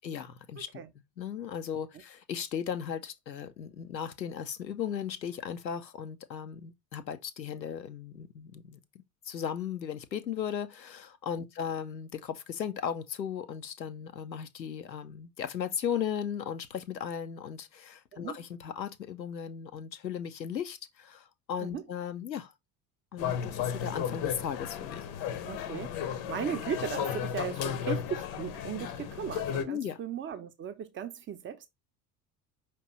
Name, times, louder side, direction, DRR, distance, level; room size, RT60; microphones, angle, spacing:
voice 1, 0.0-0.8 1.2-22.5 23.1-25.0 29.7-30.0, left 8 dB, 85° left, 0.6 m, -36 dB
sound 1, 23.2-29.7, left 8 dB, 45° left, 0.7 m, -34 dB
voice 2, 25.4-31.7, right 8 dB, 25° right, 0.7 m, -37 dB
5.0 x 2.9 x 3.0 m
figure-of-eight pair, 65°, 50 cm